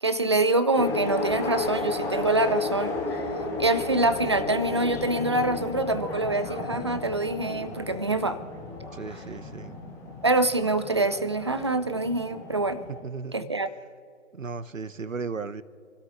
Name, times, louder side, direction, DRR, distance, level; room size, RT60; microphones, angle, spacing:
voice 1, 0.0-3.0 3.6-8.4 10.2-12.8 13.3-13.7, right 2 dB, 25° right, 12 dB, 0.4 m, -25 dB
sound 1, 0.7-13.0, left 3 dB, 5° left, 1.0 m, -33 dB
voice 2, 8.9-9.8 12.9-13.5 14.3-15.6, right 4 dB, 85° right, 14 dB, 1.0 m, -36 dB
28.0 x 13.0 x 2.6 m, 2.6 s
figure-of-eight pair, 140°, 38 cm